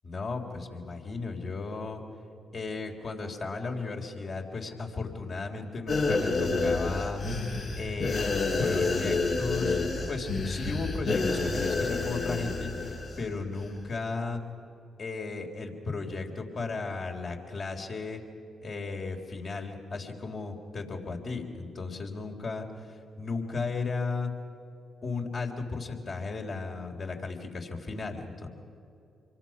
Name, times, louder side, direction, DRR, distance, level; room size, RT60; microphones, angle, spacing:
voice 1, 0.0-2.0 2.5-7.2 7.8-9.8 10.1-14.4 15.0-18.2 18.6-24.3 25.0-28.5, left 3 dB, 50° left, 2 dB, 3.6 m, -35 dB
sound 1, 5.9-13.2 13.5-13.7, left 3 dB, 70° left, 6.5 m, -29 dB
27.0 x 23.5 x 6.1 m, 2.6 s
hypercardioid pair, 45°, 0 cm